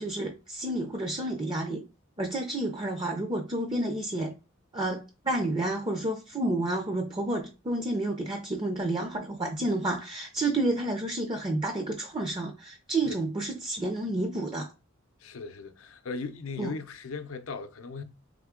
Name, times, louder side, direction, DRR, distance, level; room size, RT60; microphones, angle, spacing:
voice 1, 0.0-1.8 2.2-4.3 4.7-14.7 16.6-16.7, right 2 dB, 25° right, 0.5 m, -30 dB
voice 2, 15.2-18.0, left 4 dB, 80° left, 0.6 m, -38 dB
3.6 x 3.5 x 3.6 m
head